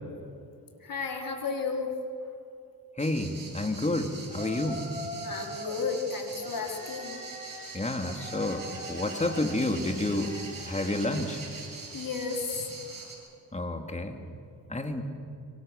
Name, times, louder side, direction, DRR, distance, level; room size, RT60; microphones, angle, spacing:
voice 1, 0.8-2.0 5.2-7.2 11.9-12.7, left 4 dB, 60° left, 2 dB, 4.0 m, -33 dB
voice 2, 3.0-4.9 7.7-10.3 10.7-11.4 13.5-14.2 14.7-15.0, left 2 dB, 20° left, 5 dB, 2.5 m, -30 dB
sound 1, 3.0-13.1, right 3 dB, 60° right, 6.8 m, -43 dB
Yell, 4.3-5.8 6.4-13.1, equal, 20° right, 7.5 m, -43 dB
25.0 x 25.0 x 6.8 m, 2.7 s
cardioid pair, 70°, 39 cm